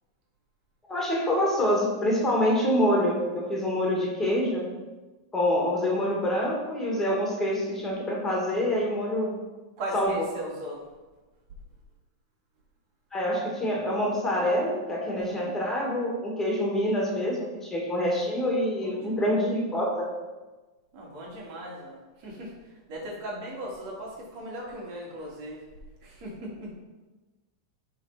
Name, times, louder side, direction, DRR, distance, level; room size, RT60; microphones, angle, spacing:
voice 1, 0.9-4.7 5.3-9.3 9.9-10.3 13.1-20.1, left 1 dB, 15° left, -2 dB, 2.1 m, -26 dB
voice 2, 9.8-10.8 15.2-15.5 18.8-19.3 20.9-22.5 22.9-25.6 26.0-26.7, right 1 dB, 50° right, -3 dB, 2.6 m, -38 dB
10.0 x 3.8 x 4.2 m, 1.2 s
hypercardioid pair, 115°, 2 cm